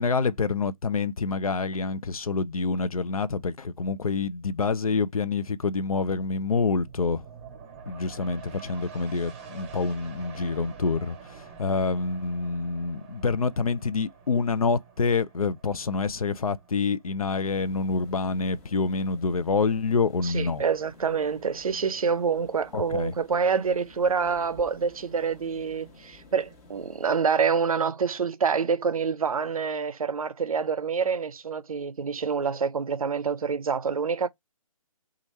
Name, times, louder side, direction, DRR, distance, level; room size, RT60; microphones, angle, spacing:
voice 1, 0.0-7.2 7.9-20.6 22.7-23.1, left 4 dB, 75° left, 0.6 m, -27 dB
sound 1, 6.1-19.0 19.4-19.5, right 6 dB, 20° right, 0.7 m, -47 dB
sound 2, 17.5-27.1, left 2 dB, 25° left, 1.1 m, -52 dB
voice 2, 20.2-34.3, right 6 dB, 75° right, 0.5 m, -27 dB
3.1 x 2.4 x 4.1 m
figure-of-eight pair, 145°, 19 cm